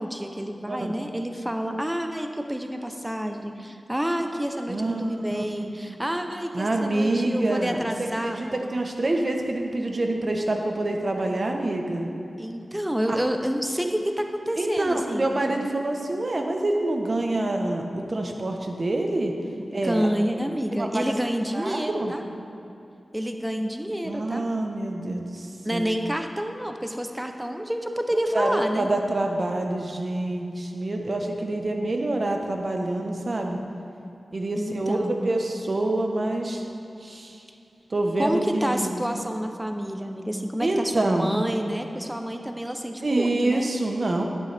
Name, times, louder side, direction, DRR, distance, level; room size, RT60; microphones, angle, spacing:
voice 1, 0.0-8.7 12.4-15.4 19.8-22.2 23.1-24.5 25.6-28.9 34.6-35.2 38.2-43.7, equal, 10° right, 5 dB, 0.7 m, -29 dB
voice 2, 4.7-5.7 6.5-12.1 13.1-13.2 14.6-19.3 19.7-20.1 20.7-21.0 21.5-22.1 24.0-26.0 28.3-33.6 34.3-35.0 35.2-36.6 37.0-37.4 37.9-39.0 40.6-41.4 43.0-44.2, right 2 dB, 45° right, 2 dB, 1.0 m, -26 dB
11.5 x 9.8 x 3.4 m, 2.7 s
wide cardioid pair, 105°, 0 cm